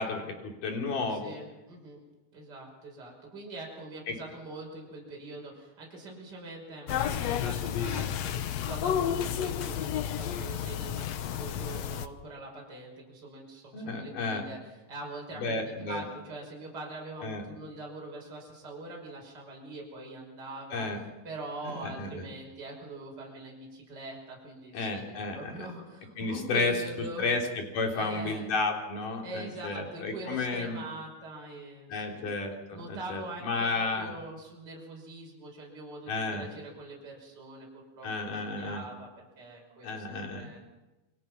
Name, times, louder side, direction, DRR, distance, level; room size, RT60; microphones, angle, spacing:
voice 1, 0.0-1.3 4.1-4.2 13.7-14.4 15.3-16.0 17.2-17.4 20.7-21.0 21.6-22.2 24.7-25.7 26.2-26.7 27.2-27.4 27.7-30.8 31.9-34.1 36.1-36.5 38.0-38.8 39.8-40.5, left 3 dB, 60° left, 1 dB, 5.1 m, -32 dB
voice 2, 1.1-2.0 2.3-20.9 21.2-27.3 27.9-28.5 29.2-32.3 32.7-40.6, right 2 dB, 25° right, -2 dB, 5.8 m, -43 dB
sound 1, 6.9-12.1, left 9 dB, 80° left, 1.5 m, -31 dB
28.5 x 24.0 x 6.0 m, 1.0 s
omnidirectional pair, 4.3 m